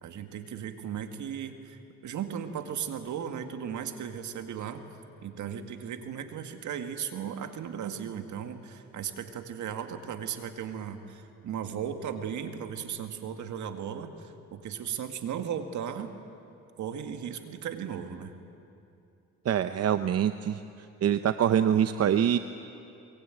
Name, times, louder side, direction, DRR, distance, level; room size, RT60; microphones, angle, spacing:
voice 1, 0.0-4.8 5.2-16.1 16.8-18.3, right 8 dB, 75° right, 7 dB, 2.0 m, -36 dB
voice 2, 19.5-20.6 21.0-22.4, right 9 dB, 55° right, 10 dB, 0.8 m, -24 dB
23.0 x 22.5 x 9.2 m, 2.7 s
cardioid pair, 90°, 30 cm